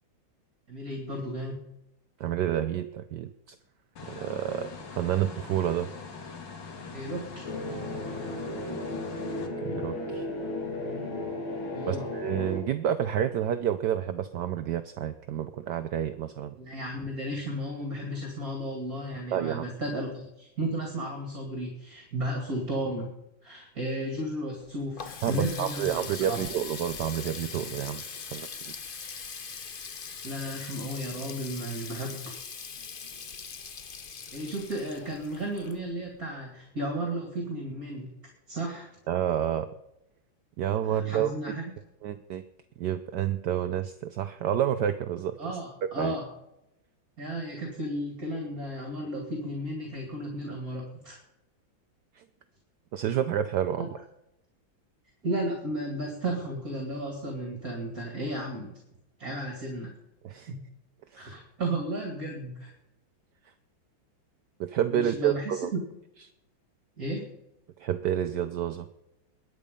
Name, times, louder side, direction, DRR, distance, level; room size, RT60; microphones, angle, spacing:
voice 1, 0.7-1.6 6.9-7.5 11.7-12.0 16.6-23.1 23.4-26.4 30.2-32.3 34.3-38.1 38.5-38.9 40.8-41.6 45.4-46.2 47.2-51.2 53.8-53.9 55.2-58.8 59.2-59.9 60.5-60.6 61.1-62.7 64.9-65.8 67.0-67.3, right 1 dB, 45° right, 1 dB, 3.0 m, -34 dB
voice 2, 2.2-3.3 4.1-5.9 9.6-10.3 11.9-16.5 19.3-19.7 25.2-28.0 28.3-28.7 39.1-39.7 40.6-41.6 42.0-42.4 42.8-45.3 46.0-46.2 52.2-52.3 52.9-53.8 60.2-60.5 61.1-61.3 64.6-65.7 67.8-68.9, right 10 dB, 65° right, 10 dB, 1.2 m, -29 dB
sound 1, 4.0-9.5, left 5 dB, 65° left, 2.4 m, -43 dB
sound 2, 7.4-12.6, left 1 dB, 85° left, 3.6 m, -34 dB
Water tap faucet, 24.5-36.2, left 5 dB, 40° left, 0.7 m, -41 dB
22.0 x 9.5 x 5.3 m, 0.86 s
omnidirectional pair, 2.2 m